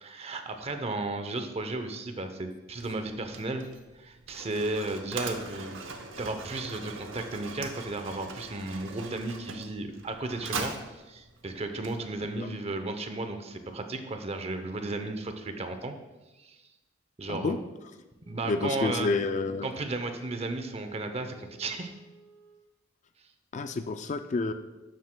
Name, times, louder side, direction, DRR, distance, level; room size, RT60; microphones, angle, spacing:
voice 1, 0.0-3.6 4.0-5.8 6.2-10.7 11.1-15.9 16.4-16.6 17.2-17.6 18.2-19.1 19.6-21.9, right 2 dB, 35° right, 7 dB, 0.7 m, -34 dB
Mechanisms, 2.7-12.4, right 4 dB, 85° right, 0.9 m, -41 dB
Wind instrument woodwind instrument, 18.2-22.7, right 4 dB, 15° left, 1.1 m, -55 dB
voice 2, 18.4-19.7 23.5-24.5, left 3 dB, 40° left, 9 dB, 0.4 m, -29 dB
11.5 x 7.6 x 2.2 m, 1.1 s
head